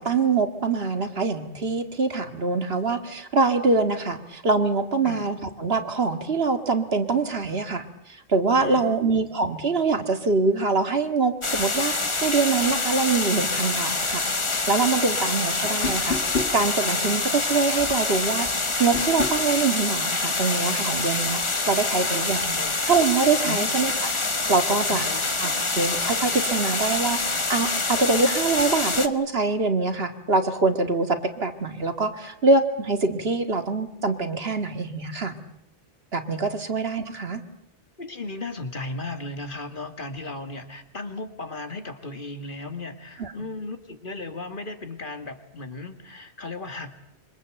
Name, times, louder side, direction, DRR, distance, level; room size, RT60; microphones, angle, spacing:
voice 1, 0.0-14.2 14.7-16.2 16.5-21.4 21.7-22.6 22.9-23.9 24.3-25.1 25.4-27.2 27.5-35.3 36.1-37.4 43.2-43.3, right 4 dB, 60° right, 7 dB, 2.2 m, -24 dB
voice 2, 8.6-9.0 22.5-22.7 23.5-23.7 24.9-25.3 38.0-46.9, left 3 dB, 50° left, 8 dB, 2.3 m, -35 dB
sound 1, 11.4-29.1, left 3 dB, 30° left, 1.3 m, -26 dB
sound 2, 15.8-16.6 18.9-19.4, left 5 dB, 70° left, 2.3 m, -28 dB
26.0 x 24.5 x 7.9 m, 0.79 s
omnidirectional pair, 1.1 m